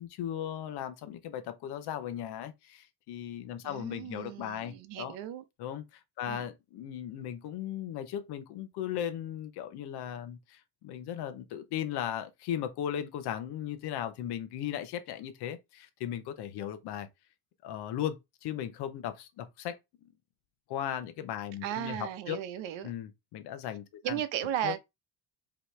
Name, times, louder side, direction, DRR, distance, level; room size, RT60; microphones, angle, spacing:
voice 1, 0.0-5.1 5.6-17.1 17.6-19.8 20.7-22.4 22.8-24.2 24.6-24.7, left 10 dB, 60° left, 0.8 m, -37 dB
voice 2, 3.6-5.4 6.3-6.5 21.6-22.9 24.0-24.8, right 11 dB, 75° right, 0.9 m, -35 dB
5.2 x 3.1 x 3.2 m
cardioid pair, 175°, 45 cm